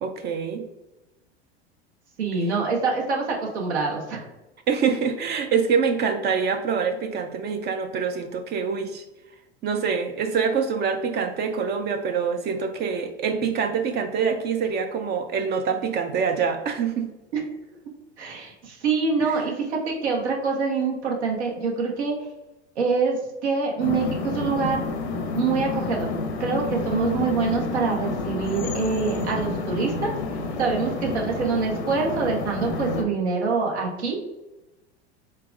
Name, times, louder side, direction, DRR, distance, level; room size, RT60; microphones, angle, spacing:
voice 1, 0.0-0.7 4.7-9.0 9.6-17.1 19.2-19.4 30.7-31.0, right 6 dB, 30° right, 6 dB, 0.4 m, -25 dB
voice 2, 2.2-4.3 17.3-17.4 18.2-22.1 22.8-24.9 25.4-26.1 26.4-30.1 30.6-34.2, right 4 dB, 80° right, 0 dB, 1.2 m, -25 dB
sound 1, 23.8-33.0, left 3 dB, 75° left, 0.8 m, -29 dB
4.5 x 3.5 x 2.4 m, 1.0 s
hypercardioid pair, 85°, 33 cm